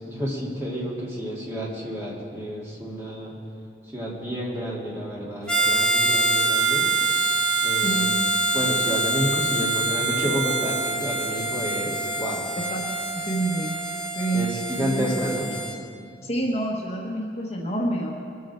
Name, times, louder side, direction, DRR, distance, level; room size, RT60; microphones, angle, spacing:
voice 1, 0.1-3.3 3.9-6.9 7.6-8.2 8.5-12.5 14.3-15.5, equal, 15° right, -6 dB, 2.8 m, -30 dB
Harmonica, 5.5-15.8, right 3 dB, 5° left, 1.0 m, -25 dB
voice 2, 7.8-8.1 12.7-12.8 13.1-13.7 14.1-14.4 14.8-15.1 16.2-18.1, right 1 dB, 35° left, -2 dB, 1.3 m, -27 dB
22.0 x 8.5 x 4.5 m, 2.3 s
head